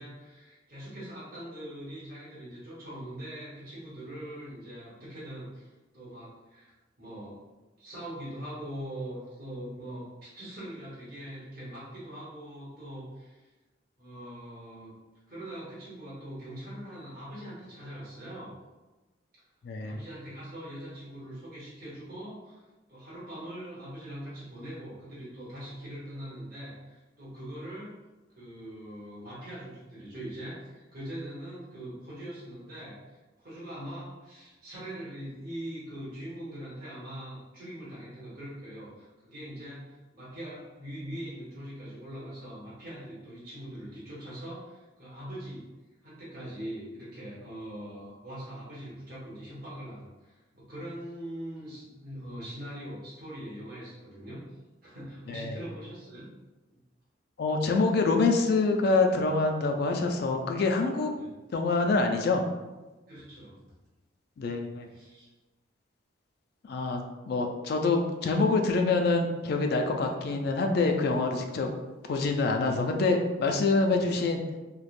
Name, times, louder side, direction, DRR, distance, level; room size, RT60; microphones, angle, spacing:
voice 1, 0.0-5.7 5.9-7.4 7.8-13.4 14.0-14.9 15.3-18.6 19.8-22.6 22.9-27.9 28.3-45.7 46.0-54.4 54.8-56.3 56.7-56.8 61.2-61.3 63.1-63.5 64.9-65.3 73.9-74.1, right 1 dB, 50° right, -9 dB, 0.9 m, -42 dB
voice 2, 19.6-20.0 55.3-55.6 57.4-61.1 61.5-62.4 64.4-64.9 66.7-71.7 72.1-74.4, left 3 dB, 55° left, 4 dB, 0.3 m, -26 dB
3.1 x 2.0 x 2.4 m, 1.1 s
head